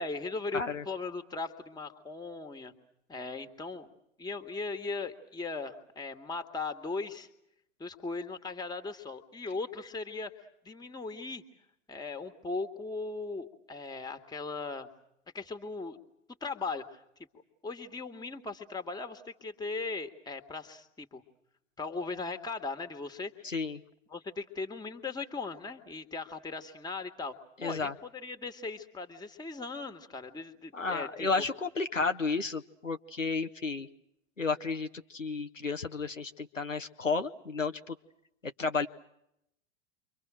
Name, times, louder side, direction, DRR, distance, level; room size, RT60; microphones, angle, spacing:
voice 1, 0.0-2.7 3.1-3.9 4.2-7.3 7.8-11.4 11.9-14.9 15.3-16.0 16.4-17.0 17.6-21.2 21.8-23.3 24.1-27.4 27.6-31.5, left 3 dB, 10° left, 8 dB, 1.9 m, -38 dB
voice 2, 23.4-23.8 27.6-27.9 30.7-33.9 34.4-37.9 38.6-38.9, left 4 dB, 85° left, 7 dB, 1.1 m, -32 dB
29.5 x 24.5 x 6.3 m, 0.79 s
figure-of-eight pair, 90°, 37 cm